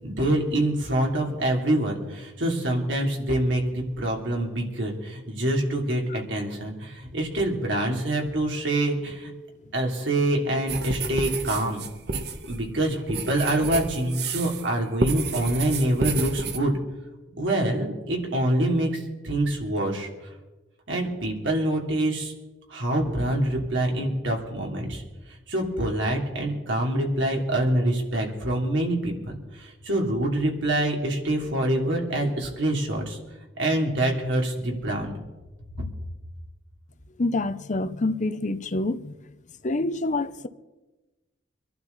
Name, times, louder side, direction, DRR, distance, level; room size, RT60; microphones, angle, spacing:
voice 1, 0.0-9.3 9.7-11.8 12.5-16.7 17.4-20.1 20.9-22.3 22.7-25.0 25.5-33.2 33.6-35.1, right 1 dB, 85° right, 3.3 m, -25 dB
sound 1, 10.7-14.7 15.0-16.6, right 3 dB, 60° right, 1.1 m, -30 dB
voice 2, 37.2-39.1 39.6-40.5, left 2 dB, 40° left, 0.7 m, -27 dB
25.5 x 11.5 x 4.1 m
head